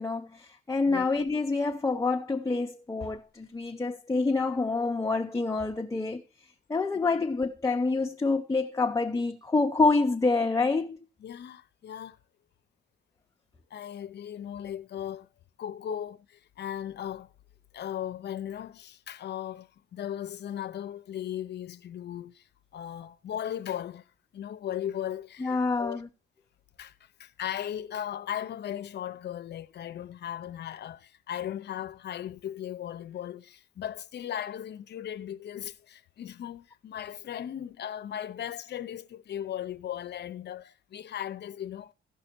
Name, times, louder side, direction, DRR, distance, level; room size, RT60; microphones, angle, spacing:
voice 1, 0.0-6.2 6.7-11.0 25.4-26.1, left 3 dB, 15° left, 0.7 m, -27 dB
voice 2, 11.2-12.2 13.7-15.3 15.6-17.3 17.7-22.5 22.7-24.0 24.3-26.0 26.8-41.9, left 10 dB, 60° left, 0.7 m, -37 dB
15.5 x 5.5 x 4.5 m
cardioid pair, 90°, 20 cm